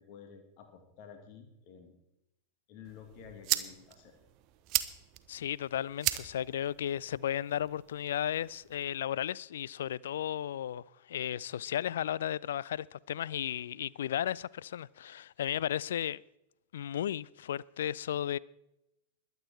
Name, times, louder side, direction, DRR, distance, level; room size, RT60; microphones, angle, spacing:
voice 1, 0.0-2.0 2.7-4.1, left 7 dB, 45° left, 2.0 m, -51 dB
sound 1, 2.8-8.8, right 15 dB, 40° right, 0.9 m, -38 dB
voice 2, 5.3-16.2 16.7-18.4, left 10 dB, 60° left, 0.3 m, -34 dB
21.5 x 8.1 x 4.5 m
figure-of-eight pair, 90°, 0 cm